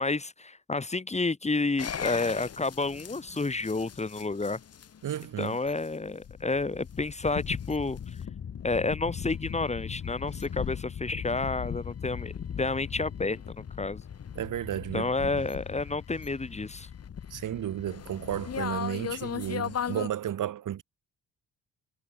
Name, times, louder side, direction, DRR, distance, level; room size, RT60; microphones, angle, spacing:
voice 1, 0.0-4.6 5.4-8.0 8.6-12.3 12.6-13.4 13.8-14.0 14.9-16.9, left 3 dB, 20° left, 2.6 m, -30 dB
sound 1, 1.8-20.1, left 8 dB, 50° left, 2.3 m, -38 dB
voice 2, 5.0-5.6 14.3-15.4 17.3-20.8, right 11 dB, 75° right, 6.2 m, -33 dB
cardioid pair, 95°, 31 cm